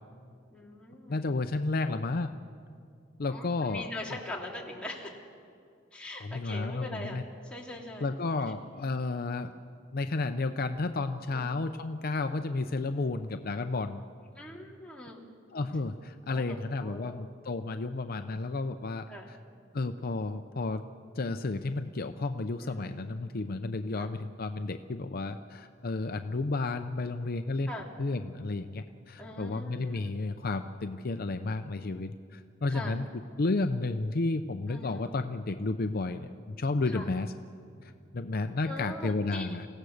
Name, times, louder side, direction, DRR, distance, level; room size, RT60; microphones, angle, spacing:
voice 1, 0.5-1.3 3.3-5.2 5.9-8.1 11.3-11.5 14.4-15.2 16.3-17.2 19.1-19.3 22.6-22.9 24.0-24.1 27.7-27.9 29.2-30.1 32.7-33.0 34.7-35.0 36.9-37.1 38.7-39.5, left 1 dB, 5° left, -3 dB, 2.8 m, -42 dB
voice 2, 1.1-2.3 3.2-3.9 6.2-7.2 8.0-9.5 9.9-14.0 15.5-19.4 19.7-20.8 21.1-27.7 28.0-33.1 33.4-37.3 37.8-39.7, left 3 dB, 50° left, 8 dB, 0.6 m, -32 dB
29.0 x 16.5 x 6.5 m, 2.4 s
head